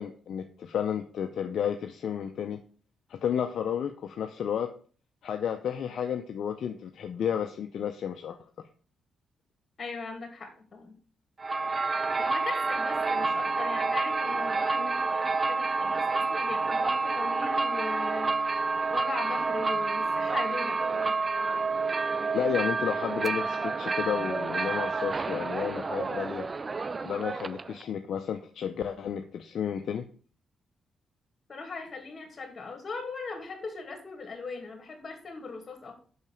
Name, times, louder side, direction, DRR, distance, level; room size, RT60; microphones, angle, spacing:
voice 1, 0.0-2.6 3.1-4.7 5.2-8.4 22.3-26.4 27.0-30.1, left 8 dB, 70° left, 6 dB, 0.6 m, -32 dB
voice 2, 9.8-10.9 12.2-18.3 18.9-21.1 31.5-36.0, left 4 dB, 45° left, 5 dB, 2.3 m, -39 dB
sound 1, 11.4-27.8, right 4 dB, 35° right, 0.4 m, -29 dB
5.8 x 5.4 x 5.2 m, 0.41 s
supercardioid pair, 60°, 0 cm